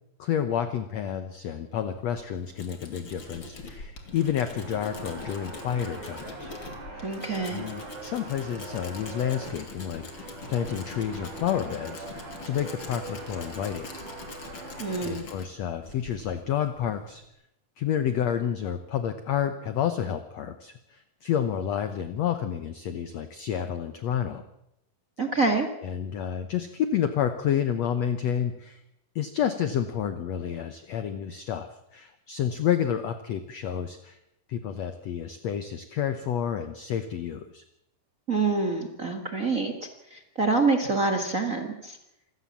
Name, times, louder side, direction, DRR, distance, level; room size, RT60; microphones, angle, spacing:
voice 1, 0.2-6.5 6.9-7.1 7.5-13.9 15.0-17.2 17.8-24.4 25.8-28.8 29.1-34.2 34.5-37.6, left 9 dB, 70° left, 10 dB, 1.6 m, -30 dB
Tools, 1.9-17.3, left 3 dB, 35° left, 3.1 m, -44 dB
sound 1, 4.0-15.1, right 2 dB, 60° right, 7.0 m, -42 dB
voice 2, 7.0-7.6 14.8-15.3 25.2-25.7 38.3-39.7 40.1-42.0, right 3 dB, 40° right, 5 dB, 1.2 m, -26 dB
27.0 x 16.0 x 7.4 m, 0.84 s
omnidirectional pair, 4.4 m